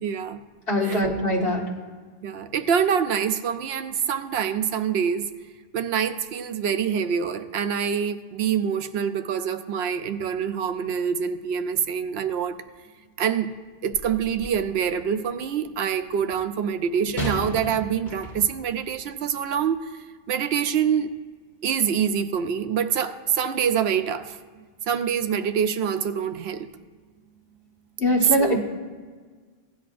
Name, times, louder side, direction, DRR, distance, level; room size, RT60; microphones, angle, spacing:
voice 1, 0.0-0.4 0.8-1.1 2.2-5.3 5.7-12.5 13.2-13.5 13.8-21.1 21.6-24.4 24.9-26.7 28.4-28.6, right 7 dB, 75° right, 9 dB, 0.8 m, -25 dB
voice 2, 0.7-1.6 28.0-28.6, left 1 dB, 65° left, -4 dB, 2.0 m, -22 dB
sound 1, 13.9-14.7 17.2-18.7 19.5-19.6, equal, 45° left, 3.5 m, -34 dB
16.5 x 10.5 x 2.5 m, 1.5 s
omnidirectional pair, 1.1 m